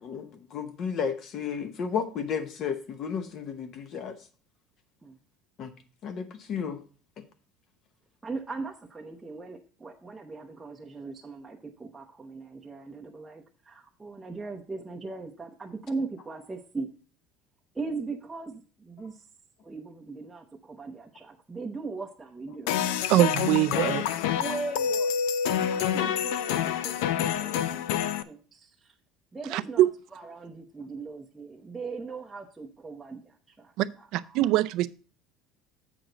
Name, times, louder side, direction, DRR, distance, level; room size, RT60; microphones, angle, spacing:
voice 1, 0.0-4.2 5.6-5.7 6.0-6.8, left 6 dB, 45° left, 0.8 m, -33 dB
voice 2, 8.2-16.9 17.7-19.2 19.6-22.7 23.8-25.2 25.7-26.6 26.8-27.9 28.2-28.9 29.3-34.4, right 3 dB, 10° right, 0.6 m, -39 dB
sound 1, 22.7-28.2, left 9 dB, 80° left, 0.5 m, -27 dB
voice 3, 23.1-24.0 29.5-29.9 33.8-33.9 34.1-34.9, right 15 dB, 60° right, 0.4 m, -23 dB
7.7 x 6.4 x 3.9 m
cardioid pair, 145°, 0 cm